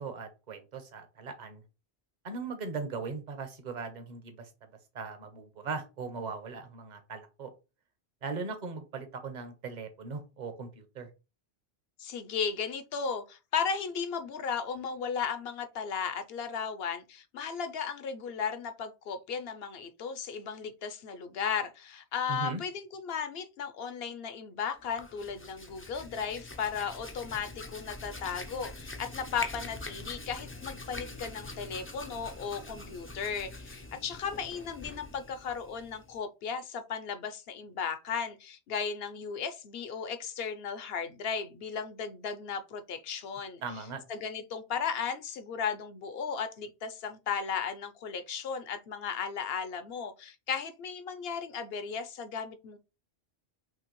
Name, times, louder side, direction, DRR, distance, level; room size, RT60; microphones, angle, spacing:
voice 1, 0.0-1.6 2.2-4.5 4.9-7.5 8.2-11.1 22.3-22.6 43.6-44.0, right 4 dB, 45° right, 1.0 m, -39 dB
voice 2, 12.0-43.6 44.1-52.8, left 6 dB, 70° left, 0.9 m, -35 dB
Hands, 24.8-36.2, left 2 dB, 20° left, 0.3 m, -44 dB
5.8 x 2.9 x 3.1 m
omnidirectional pair, 1.1 m